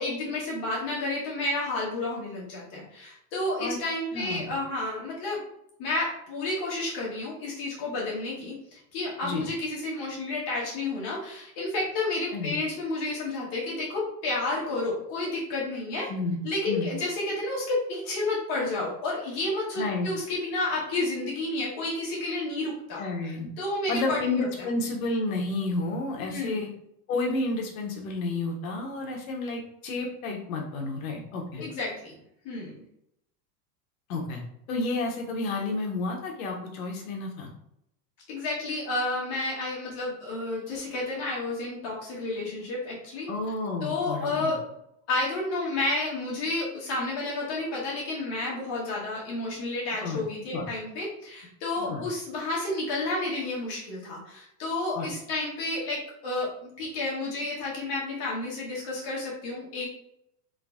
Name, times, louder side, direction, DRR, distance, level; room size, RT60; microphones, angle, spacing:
voice 1, 0.0-5.4 5.8-16.1 16.4-23.0 23.6-24.5 26.2-26.6 31.6-32.2 32.4-32.7 38.3-43.3 43.8-44.6 45.1-56.5 56.8-59.9, left 2 dB, 35° left, -5 dB, 1.3 m, -31 dB
voice 2, 4.1-4.5 9.2-9.4 12.3-12.5 16.1-16.4 16.7-16.9 19.8-20.1 23.0-23.5 23.9-26.7 27.1-31.6 34.1-34.4 34.7-37.5 43.3-44.5 50.0-50.2 50.5-50.7 51.8-52.0 54.9-55.1, left 3 dB, 65° left, 1 dB, 1.0 m, -31 dB
3.8 x 2.6 x 3.6 m, 0.76 s
supercardioid pair, 180°, 45 cm